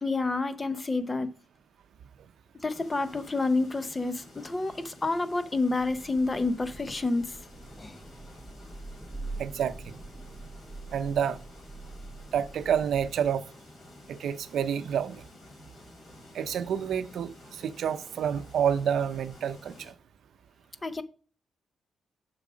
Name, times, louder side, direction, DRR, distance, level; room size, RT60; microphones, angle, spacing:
voice 1, 0.0-1.3 2.6-7.4 7.8-8.0 20.8-21.0, left 3 dB, 25° left, 0.7 m, -29 dB
sound 1, 2.7-19.9, left 2 dB, 65° left, 3.0 m, -52 dB
Thunder / Rain, 5.5-13.5, right 3 dB, 5° right, 2.7 m, -44 dB
voice 2, 9.4-10.0 10.9-11.4 12.3-13.4 14.1-15.2 16.3-19.9, right 8 dB, 80° right, 0.6 m, -29 dB
7.1 x 4.9 x 5.0 m
cardioid pair, 105°, 0 cm